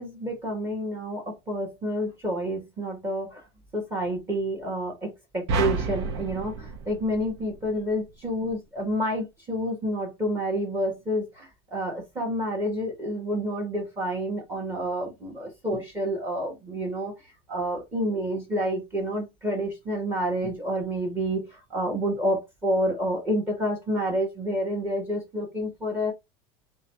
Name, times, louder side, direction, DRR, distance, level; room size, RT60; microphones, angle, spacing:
voice 1, 0.0-3.4 3.7-17.1 17.5-26.1, equal, 15° right, 1.3 m, -29 dB
sound 1, 5.5-7.9, right 3 dB, 85° right, 0.8 m, -30 dB
3.8 x 2.3 x 4.4 m
cardioid pair, 165°, 14 cm